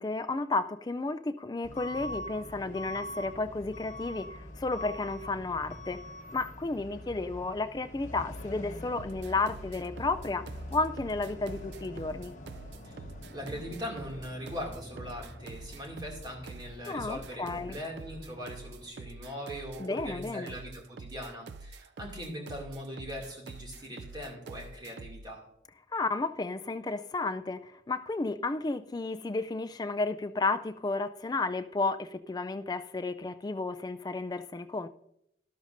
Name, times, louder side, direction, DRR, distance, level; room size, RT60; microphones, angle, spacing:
voice 1, 0.0-6.0 6.3-10.4 10.7-12.3 16.9-17.8 19.8-20.5 25.9-34.9, left 3 dB, 20° left, 0.3 m, -32 dB
Truck / Alarm, 1.6-18.9, left 1 dB, 40° left, 1.2 m, -45 dB
sound 1, 9.0-25.3, right 3 dB, 60° right, 0.4 m, -46 dB
voice 2, 13.3-25.4, equal, 25° right, 2.3 m, -41 dB
12.5 x 12.0 x 2.6 m
head